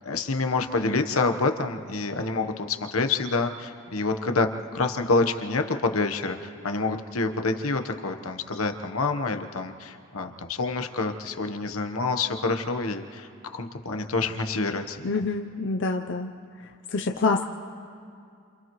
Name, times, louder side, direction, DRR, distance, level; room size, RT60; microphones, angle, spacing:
voice 1, 0.0-4.5 4.7-15.1, left 3 dB, 80° left, 6 dB, 1.1 m, -27 dB
voice 2, 15.0-16.3 16.6-17.5, left 3 dB, 55° left, 2 dB, 0.6 m, -27 dB
30.0 x 28.0 x 3.1 m, 2.4 s
head